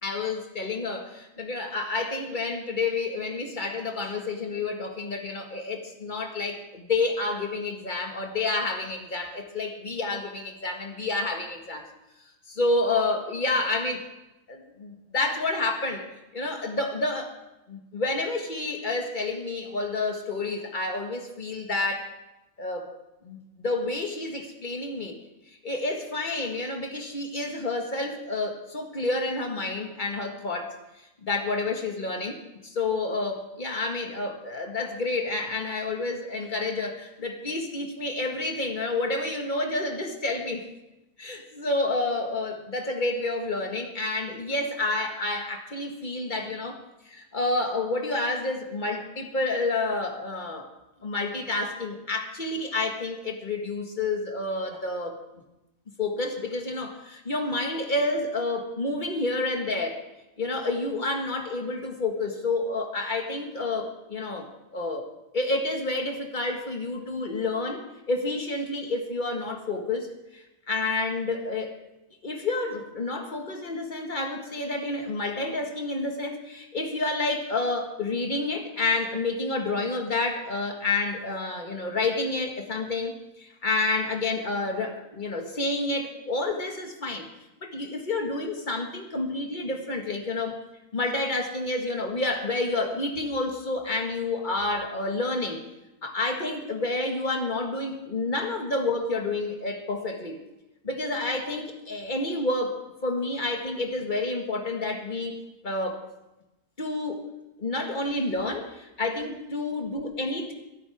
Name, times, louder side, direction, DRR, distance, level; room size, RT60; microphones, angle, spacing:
voice 1, 0.0-11.9 12.5-14.0 14.5-16.1 16.3-17.3 17.7-22.1 22.6-22.9 23.2-25.2 25.6-30.7 31.2-40.6 41.2-50.7 51.0-55.1 56.0-60.0 60.4-65.1 65.3-71.7 72.2-87.3 87.6-90.6 90.9-95.6 96.0-100.4 100.8-105.4 105.6-106.0 106.8-107.2 107.6-110.5, left 2 dB, 30° left, 3 dB, 1.9 m, -29 dB
23.5 x 12.5 x 3.6 m, 0.96 s
omnidirectional pair, 1.6 m